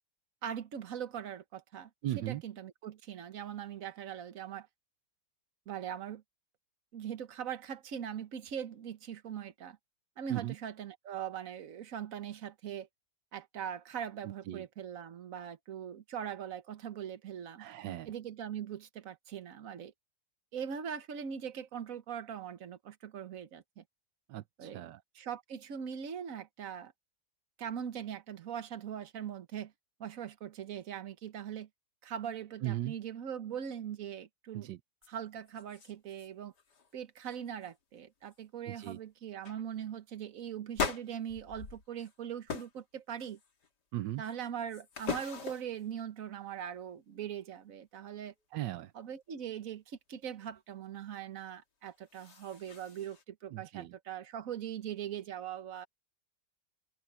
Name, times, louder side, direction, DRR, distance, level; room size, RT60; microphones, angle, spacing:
voice 1, 0.4-1.9 2.3-4.7 5.7-6.2 6.9-9.8 10.2-12.9 13.3-17.7 18.1-19.9 20.5-23.8 24.6-24.8 25.1-26.9 27.6-29.7 30.0-31.7 32.0-34.7 35.1-36.5 36.9-43.4 44.2-48.3 48.9-55.9, right 8 dB, 55° right, 1.5 m, -41 dB
voice 2, 2.0-2.4 10.3-10.5 14.5-14.6 17.6-18.1 24.3-25.0 32.6-32.9 34.5-34.8 38.7-39.0 43.9-44.2 48.5-48.9 53.5-53.9, right 14 dB, 85° right, 1.4 m, -37 dB
sound 1, 35.0-35.1 35.5-36.3 36.5-36.9 37.3-37.7 38.3-38.4 38.8-39.0 39.4-39.6 40.7-42.1 42.5-42.8 43.2-43.7 44.2-45.9 51.9-53.2, left 5 dB, 70° left, 2.7 m, -40 dB
omnidirectional pair, 1.9 m